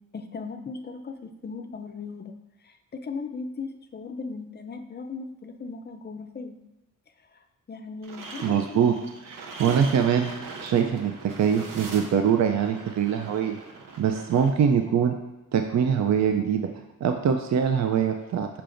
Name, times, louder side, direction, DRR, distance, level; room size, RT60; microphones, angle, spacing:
voice 1, 0.1-6.6 7.2-8.8, left 4 dB, 30° left, 7 dB, 0.4 m, -38 dB
sound 1, 8.0-14.5, right 3 dB, 75° right, 0.9 m, -41 dB
voice 2, 8.4-8.9 9.3-11.1 11.4-13.6 14.0-15.2 15.5-16.7 17.0-18.5, right 7 dB, 55° right, 5 dB, 0.5 m, -23 dB
6.6 x 5.8 x 2.5 m, 1.0 s
wide cardioid pair, 125°, 33 cm